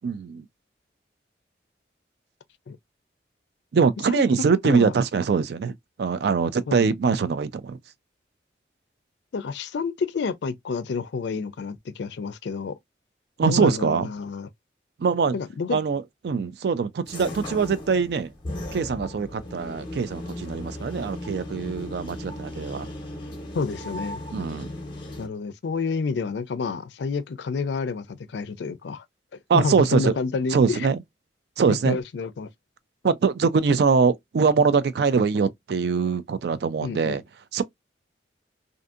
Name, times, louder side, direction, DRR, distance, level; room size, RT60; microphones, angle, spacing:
voice 1, 0.0-0.4 3.7-5.7 6.0-7.8 13.4-14.1 15.0-15.3 15.7-18.3 18.7-22.9 24.3-24.7 29.5-30.1 30.5-31.0 31.6-32.0 33.0-37.2 37.5-37.6, right 5 dB, 65° right, 0.3 m, -23 dB
voice 2, 9.3-12.8 13.4-14.5 15.3-15.8 23.5-24.2 25.2-29.0 29.5-30.9 31.7-32.5 33.0-33.1 36.8-37.2, left 4 dB, 75° left, 0.4 m, -29 dB
sound 1, 17.1-25.3, left 1 dB, 25° left, 0.7 m, -36 dB
2.6 x 2.5 x 2.4 m
head